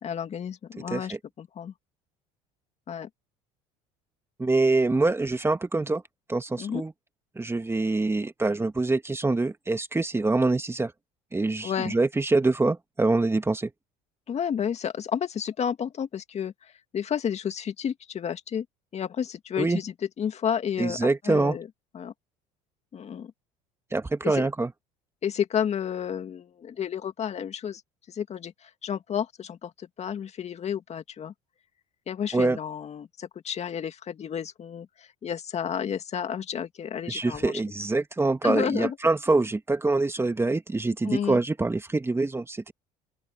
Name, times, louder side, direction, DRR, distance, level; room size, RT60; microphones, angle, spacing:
voice 1, 0.0-1.7 2.9-3.1 6.6-6.8 11.6-11.9 14.3-16.5 16.9-18.7 18.9-21.7 21.9-22.1 22.9-23.3 24.2-24.5 25.2-27.8 28.1-31.3 32.1-34.9 35.2-37.6 38.4-39.0 41.0-41.4, left 8 dB, 40° left, 2.2 m, -31 dB
voice 2, 0.9-1.2 4.4-6.0 6.3-6.9 7.4-10.9 11.3-13.7 19.6-19.8 20.8-21.6 23.9-24.7 32.3-32.6 37.1-42.7, right 3 dB, 15° right, 2.3 m, -25 dB
open air
supercardioid pair, 80°, 16 cm